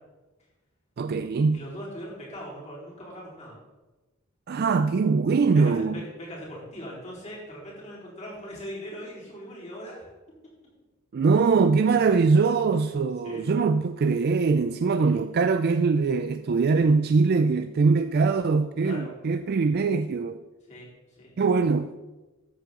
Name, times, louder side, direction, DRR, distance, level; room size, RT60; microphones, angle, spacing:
voice 1, 1.0-1.6 4.5-6.0 11.1-20.4 21.4-21.9, right 4 dB, 50° right, 10 dB, 0.4 m, -22 dB
voice 2, 1.5-3.6 5.5-10.1 13.2-13.4 15.0-15.2 18.8-19.1 20.7-21.4, equal, 35° left, -5 dB, 4.0 m, -40 dB
13.5 x 7.6 x 3.8 m, 1.1 s
head